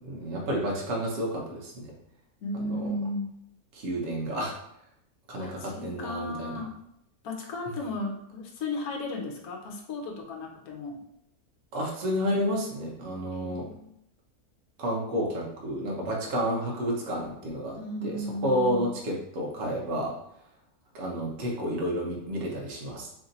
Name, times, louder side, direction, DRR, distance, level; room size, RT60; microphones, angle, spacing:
voice 1, 0.0-1.9 2.6-2.9 3.7-4.6 5.3-6.5 11.7-13.7 14.8-17.8 18.0-20.1 20.9-23.1, equal, 55° right, -2 dB, 1.1 m, -30 dB
voice 2, 2.4-3.3 5.4-6.7 7.2-11.0 13.3-13.9 17.8-19.0, left 2 dB, 75° left, 0 dB, 1.2 m, -35 dB
3.4 x 2.6 x 3.9 m, 0.75 s
omnidirectional pair, 1.6 m